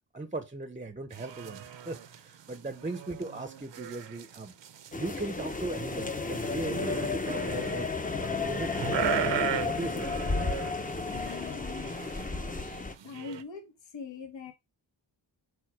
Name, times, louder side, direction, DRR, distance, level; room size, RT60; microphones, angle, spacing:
voice 1, 0.1-4.6 4.9-7.9 8.2-9.3 9.6-10.1, right 2 dB, 15° right, 0.7 m, -38 dB
sound 1, 1.1-13.4, right 9 dB, 65° right, 0.8 m, -37 dB
sound 2, 4.9-13.0, left 3 dB, 20° left, 0.7 m, -32 dB
voice 2, 11.1-12.0 13.0-14.5, left 6 dB, 70° left, 1.5 m, -42 dB
4.8 x 4.1 x 5.9 m
wide cardioid pair, 115°, 46 cm